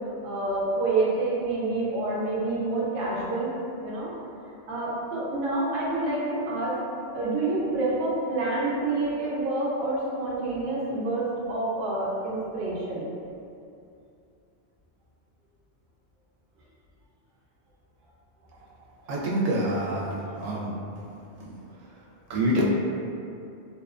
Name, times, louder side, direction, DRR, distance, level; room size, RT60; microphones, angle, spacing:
voice 1, 0.2-3.5 3.8-4.1 4.7-6.8 7.1-13.1, right 2 dB, 60° right, -6 dB, 0.7 m, -28 dB
voice 2, 19.1-20.7 21.4-21.6 22.3-22.6, right 1 dB, 90° right, -5 dB, 0.9 m, -26 dB
2.7 x 2.2 x 2.3 m, 2.6 s
omnidirectional pair, 1.2 m